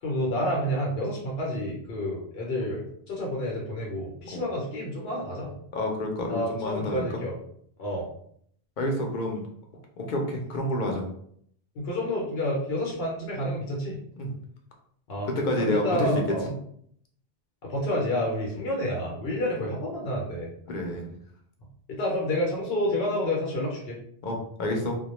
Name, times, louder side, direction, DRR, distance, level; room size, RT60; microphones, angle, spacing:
voice 1, 0.0-5.5 6.3-7.3 7.8-8.1 11.8-14.0 15.1-15.3 15.6-16.5 17.6-20.5 21.9-24.0, left 1 dB, 80° left, -2 dB, 0.9 m, -29 dB
voice 2, 5.7-7.2 8.8-9.4 10.0-11.0 14.2-14.3 15.2-16.1 16.4-16.5 18.6-18.7 20.7-21.1 24.2-25.0, left 1 dB, 55° left, 1 dB, 0.7 m, -29 dB
2.2 x 2.1 x 2.9 m, 0.66 s
omnidirectional pair, 1.0 m